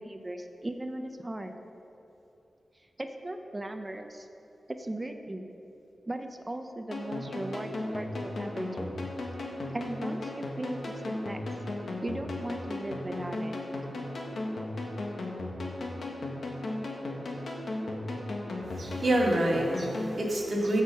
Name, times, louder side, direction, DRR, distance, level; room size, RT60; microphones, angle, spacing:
voice 1, 0.0-1.5 3.0-4.3 4.7-5.5 6.1-9.0 9.7-11.4 12.0-13.5, right 1 dB, 20° right, 6 dB, 0.6 m, -37 dB
sound 1, 6.9-20.1, left 2 dB, 70° left, 1.6 m, -36 dB
voice 2, 18.7-20.8, right 1 dB, 45° right, -4 dB, 2.2 m, -27 dB
15.0 x 5.5 x 5.4 m, 2.9 s
wide cardioid pair, 110°, 0 cm